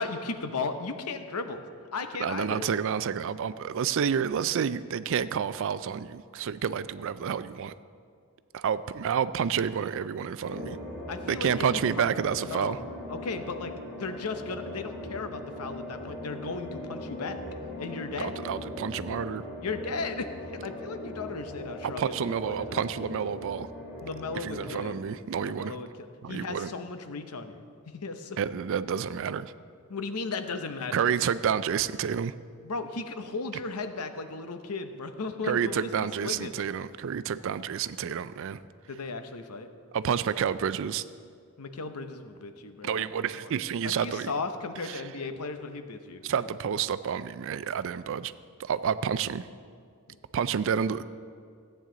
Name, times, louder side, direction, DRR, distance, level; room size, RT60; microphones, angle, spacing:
voice 1, 0.0-1.6 1.9-2.7 11.1-12.1 12.5-12.8 13.1-17.4 17.8-18.4 19.6-20.3 20.6-22.8 24.0-25.0 25.4-28.4 29.9-31.1 32.6-35.9 36.2-36.6 38.9-39.7 41.6-43.1 43.3-43.5 43.8-46.2 50.1-50.2, left 4 dB, 90° left, 8 dB, 0.8 m, -36 dB
voice 2, 2.2-7.7 8.5-10.8 11.3-12.8 18.2-19.4 21.8-23.7 24.3-25.8 26.2-26.7 28.4-29.5 30.9-32.4 35.4-38.6 39.9-41.0 42.8-44.3 44.8-45.0 46.2-48.3 48.6-49.5 50.3-51.0, right 7 dB, 60° right, 15 dB, 0.4 m, -29 dB
sound 1, 10.4-24.9, left 1 dB, ahead, 3.0 m, -40 dB
15.0 x 8.9 x 3.8 m, 2.2 s
head